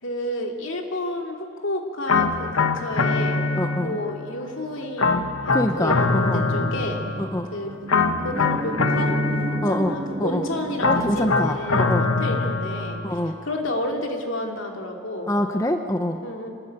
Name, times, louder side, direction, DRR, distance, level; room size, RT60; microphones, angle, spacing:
voice 1, 0.0-3.4 3.8-7.0 7.5-7.8 8.2-9.2 9.5-15.3 16.2-16.5, left 1 dB, 65° left, 2 dB, 2.9 m, -31 dB
sound 1, 2.1-4.2 5.0-7.4 7.9-10.0 10.8-13.2, left 3 dB, 90° left, 1.5 m, -23 dB
voice 2, 3.6-4.0 5.5-6.4 7.2-7.5 9.6-9.9 10.2-10.5 10.8-12.1 13.0-13.4 15.3-16.2, left 1 dB, 15° left, 5 dB, 0.9 m, -25 dB
sound 2, 5.7-11.0, right 2 dB, 25° right, 0.6 m, -33 dB
25.5 x 20.0 x 9.0 m, 2.4 s
head